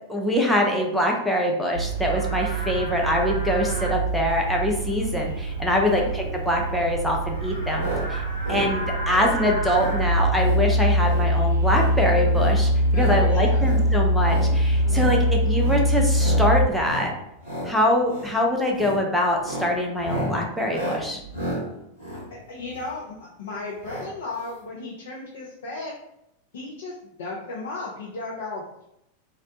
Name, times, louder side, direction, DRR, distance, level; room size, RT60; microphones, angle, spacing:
voice 1, 0.1-7.9 8.5-17.1 17.6-21.2, left 1 dB, ahead, 0 dB, 0.5 m, -24 dB
Livestock farm animals working animals, 1.7-16.7, right 1 dB, 90° right, 0.5 m, -23 dB
voice 2, 5.8-6.1 7.7-7.8 8.2-8.4 12.9-13.7 14.8-15.3 22.3-25.9 26.5-28.9, left 3 dB, 60° left, -4 dB, 0.4 m, -35 dB
sound 1, 7.7-8.0 8.3-8.7 9.0-9.3 9.7-10.0 10.3-10.6 10.9-11.3 11.6-11.9 12.3-13.2 13.6-13.8 14.2-14.5 14.9-15.2 15.5-15.8 16.1-16.4 16.8-17.1 17.4-17.7 18.1-18.3 18.7-19.0 19.3-23.0 23.8-24.1 24.4-24.5 24.6-24.7, equal, 80° left, 0.9 m, -33 dB
2.4 x 2.1 x 2.7 m, 0.82 s
figure-of-eight pair, 90°, 0 cm